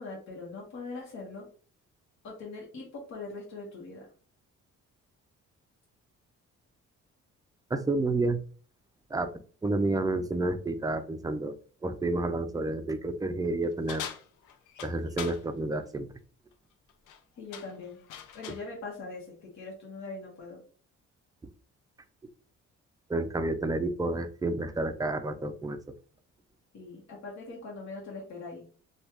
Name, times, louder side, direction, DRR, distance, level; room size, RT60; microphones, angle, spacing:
voice 1, 0.0-1.5 2.2-4.1 17.4-18.0 18.3-20.6 26.7-28.6, left 3 dB, 65° left, -3 dB, 1.2 m, -41 dB
voice 2, 7.7-8.4 9.1-9.3 9.6-11.5 11.8-14.0 14.8-16.1 23.1-25.8, right 2 dB, 15° right, 9 dB, 0.3 m, -30 dB
sound 1, 13.9-15.4 16.9-17.2 17.5-18.7, left 9 dB, 85° left, 0.5 m, -41 dB
3.1 x 2.3 x 2.9 m, 0.41 s
cardioid pair, 90°, 30 cm